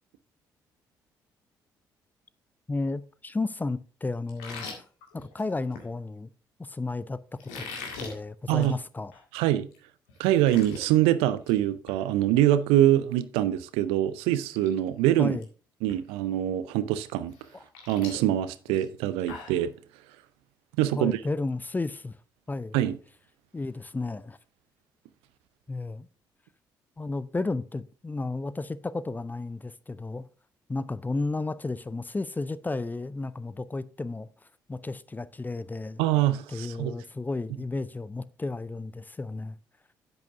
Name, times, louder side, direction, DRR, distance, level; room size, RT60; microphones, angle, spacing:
voice 1, 2.7-4.7 5.1-6.3 6.6-7.2 7.6-7.7 8.0-9.1 15.2-15.4 17.5-17.6 20.9-22.2 22.5-22.8 23.5-24.4 25.7-26.1 27.0-30.3 30.7-34.3 34.7-36.0 36.5-39.6, left 3 dB, 15° left, 0.5 m, -33 dB
sound 1, 4.3-5.9 7.4-8.1 8.5-8.8 9.1-9.2 9.7-9.8 10.1-10.9 11.3-11.6 11.9-12.0 13.8-13.9 14.4-14.7 15.0-15.4 15.9-16.0 17.3-19.6, left 4 dB, 70° left, 1.9 m, -41 dB
voice 2, 9.3-9.7 10.2-15.4 15.8-17.3 17.9-19.7 20.8-21.2 22.7-23.0 36.0-36.9, right 13 dB, 65° right, 0.5 m, -24 dB
10.5 x 8.3 x 2.5 m
figure-of-eight pair, 45°, 10 cm